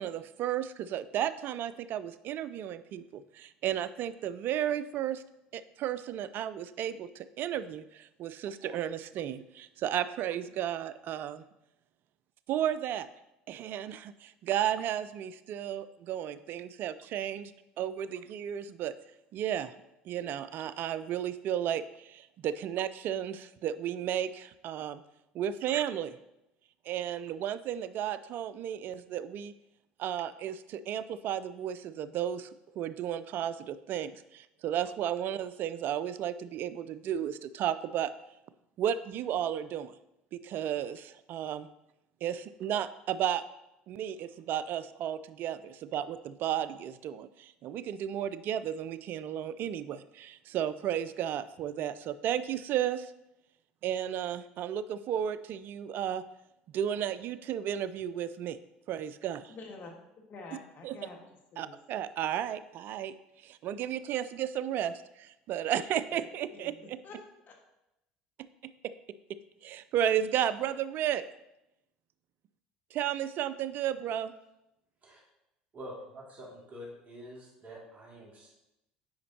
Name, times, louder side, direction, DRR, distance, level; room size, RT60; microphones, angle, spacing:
voice 1, 0.0-5.2 5.5-11.4 12.5-13.1 13.5-17.5 17.8-18.9 19.3-19.7 20.1-25.0 25.3-26.1 26.9-29.5 30.0-32.5 32.8-38.1 38.8-39.9 40.3-41.7 42.2-43.4 43.9-53.1 53.8-56.2 56.7-58.6 58.9-59.5 60.8-60.9 61.6-63.1 63.4-67.0 69.6-71.2 72.9-74.3, right 10 dB, 55° right, 14 dB, 0.4 m, -33 dB
voice 2, 59.5-59.9 60.2-61.7 66.1-67.2 67.5-67.6, left 3 dB, 50° left, 1 dB, 1.6 m, -48 dB
voice 3, 75.7-78.5, equal, 40° right, -4 dB, 2.3 m, -46 dB
8.6 x 5.1 x 2.8 m, 0.87 s
hypercardioid pair, 70°, 4 cm